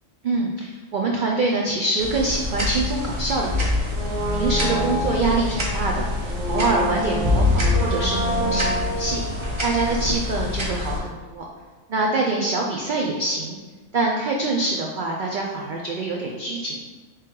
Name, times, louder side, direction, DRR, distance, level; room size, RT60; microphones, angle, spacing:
voice 1, 0.2-3.9 4.3-6.1 6.5-9.2 9.6-11.4 11.9-13.6 13.9-16.8, right 3 dB, 90° right, -1 dB, 0.4 m, -25 dB
sound 1, 2.0-11.0, left 2 dB, 35° right, 0.5 m, -25 dB
Brass instrument, 3.9-10.7 11.0-11.1, right 1 dB, 60° right, 1.6 m, -29 dB
3.4 x 3.2 x 4.4 m, 1.3 s
omnidirectional pair, 1.4 m